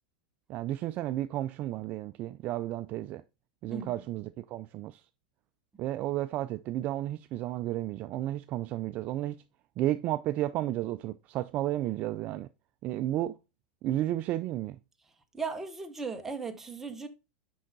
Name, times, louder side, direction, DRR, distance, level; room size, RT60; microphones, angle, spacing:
voice 1, 0.5-3.2 3.6-5.0 5.8-9.4 9.8-12.5 12.8-13.4 13.8-14.8, right 14 dB, 35° right, 0.3 m, -32 dB
voice 2, 15.3-17.1, right 4 dB, 10° right, 0.8 m, -37 dB
6.3 x 5.4 x 3.9 m
supercardioid pair, 150°, 4 cm